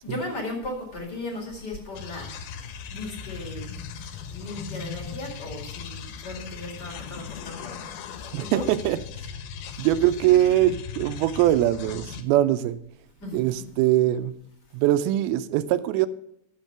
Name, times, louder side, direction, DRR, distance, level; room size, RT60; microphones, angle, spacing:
voice 1, 0.0-8.7 9.7-9.9 13.2-13.6, left 2 dB, 35° left, 1 dB, 2.0 m, -37 dB
sound 1, 1.9-12.2, left 7 dB, 80° left, 2.6 m, -38 dB
voice 2, 8.3-9.0 9.8-12.8 13.3-14.4 14.7-16.1, right 13 dB, 85° right, 12 dB, 2.4 m, -22 dB
11.0 x 6.8 x 5.8 m, 0.73 s
omnidirectional pair, 4.5 m